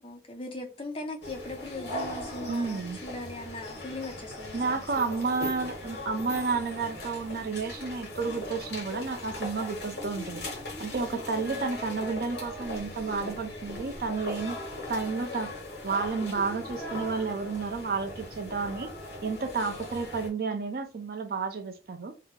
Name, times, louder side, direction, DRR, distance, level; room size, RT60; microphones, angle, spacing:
voice 1, 0.0-5.2 11.1-11.7, left 2 dB, 30° left, 0.6 m, -40 dB
sound 1, 1.2-20.3, left 1 dB, 60° left, 1.2 m, -39 dB
voice 2, 2.5-3.0 4.5-10.4 10.8-14.6 14.9-15.5 15.8-18.9 19.2-22.1, right 4 dB, 55° right, 0.4 m, -31 dB
2.8 x 2.0 x 3.6 m
head